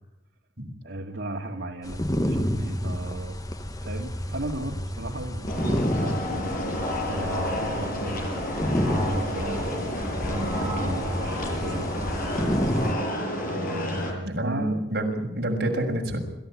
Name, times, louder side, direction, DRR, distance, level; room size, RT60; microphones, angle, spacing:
voice 1, 0.8-3.4 3.8-6.1 7.0-9.7 10.2-11.9 13.4-14.8, right 1 dB, 85° right, 1 dB, 2.3 m, -36 dB
sound 1, 1.8-12.9, equal, 20° left, 1.4 m, -30 dB
sound 2, 5.5-14.1, left 1 dB, 55° left, 7.1 m, -30 dB
voice 2, 14.2-16.2, right 1 dB, 60° right, 1 dB, 6.4 m, -27 dB
26.5 x 14.5 x 9.8 m, 0.92 s
head